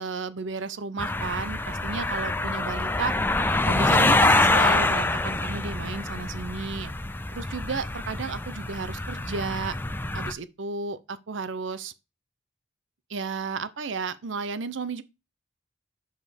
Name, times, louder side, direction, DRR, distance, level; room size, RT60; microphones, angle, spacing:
voice 1, 0.0-3.1 3.7-6.9 7.3-9.8 10.1-11.9 13.1-15.0, right 4 dB, 70° right, 0.7 m, -33 dB
sound 1, 1.0-10.3, left 2 dB, 10° left, 0.5 m, -25 dB
6.3 x 5.2 x 5.0 m
head